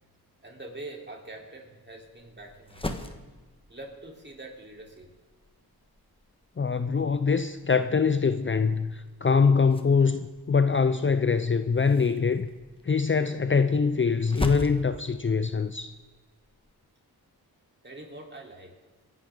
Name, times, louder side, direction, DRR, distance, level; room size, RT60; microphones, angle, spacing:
voice 1, 0.4-3.0 3.7-5.1 17.8-18.8, right 2 dB, 30° right, 0 dB, 4.0 m, -44 dB
sound 1, 2.0-16.7, left 1 dB, 15° left, 1.5 m, -42 dB
voice 2, 6.6-12.5 12.8-16.0, left 5 dB, 30° left, 11 dB, 0.6 m, -24 dB
25.0 x 11.0 x 3.9 m, 1.3 s
cardioid pair, 65°, 38 cm